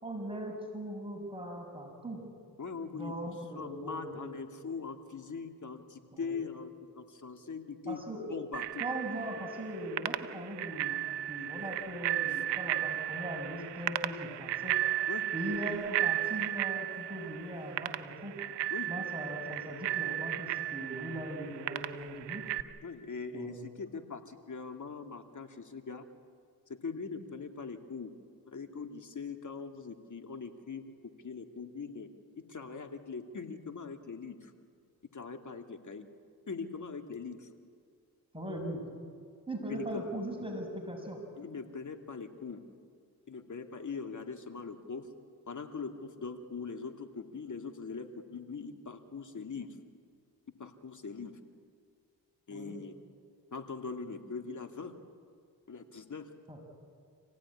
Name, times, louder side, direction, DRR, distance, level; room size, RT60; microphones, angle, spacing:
voice 1, 0.0-2.2 2.9-4.2 6.1-6.4 7.9-8.3 8.8-11.0 11.3-14.8 15.3-18.3 18.9-22.4 23.3-23.6 38.3-38.8 39.5-41.2 52.5-52.8 56.5-56.6, right 1 dB, 15° right, 1 dB, 6.7 m, -39 dB
voice 2, 2.6-3.1 3.5-8.0 8.3-8.8 15.1-15.2 18.7-18.9 22.8-26.0 26.7-28.1 28.5-30.9 31.2-32.1 32.5-34.5 35.1-36.0 36.5-37.5 39.7-40.1 41.4-42.6 43.3-45.1 45.5-49.7 50.6-51.3 52.5-52.9 53.5-54.9 55.7-56.3, left 5 dB, 45° left, 6 dB, 2.6 m, -41 dB
Bicycle bell, 8.5-22.6, right 13 dB, 85° right, 0.9 m, -35 dB
26.5 x 17.0 x 9.8 m, 2.2 s
supercardioid pair, 50°, 40 cm